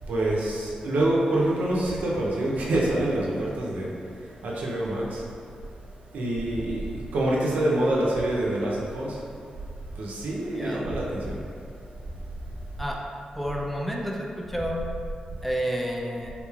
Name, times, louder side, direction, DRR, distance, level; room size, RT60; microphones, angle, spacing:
voice 1, 0.0-5.2 6.1-9.7 9.9-11.6 12.1-12.2 12.8-12.9, right 1 dB, 85° right, -4 dB, 0.6 m, -27 dB
voice 2, 10.5-10.9 12.8-13.0 13.3-14.8 15.4-16.3, equal, 5° left, -1 dB, 0.4 m, -30 dB
3.5 x 3.0 x 2.4 m, 2.3 s
cardioid pair, 65°, 3 cm